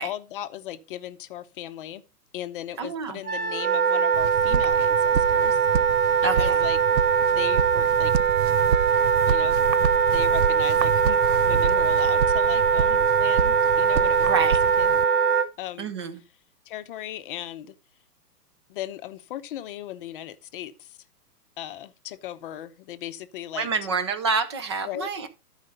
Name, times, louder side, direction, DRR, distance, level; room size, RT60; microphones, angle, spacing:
voice 1, 0.0-2.0 2.3-5.6 6.3-6.8 7.4-8.1 9.3-9.6 10.1-14.5 14.8-15.0 15.6-15.9 16.7-17.7 18.7-21.0 21.6-23.7 24.8-25.1, left 12 dB, 35° left, 0.7 m, -37 dB
voice 2, 2.8-3.2 6.2-6.6 14.2-14.6 15.8-16.2 23.5-25.3, right 4 dB, 20° right, 0.4 m, -28 dB
Wind instrument woodwind instrument, 3.2-15.5, right 6 dB, 60° right, 1.4 m, -21 dB
sound 1, 4.1-15.0, right 8 dB, 85° right, 0.6 m, -30 dB
12.0 x 4.9 x 5.3 m
hypercardioid pair, 125°, 49 cm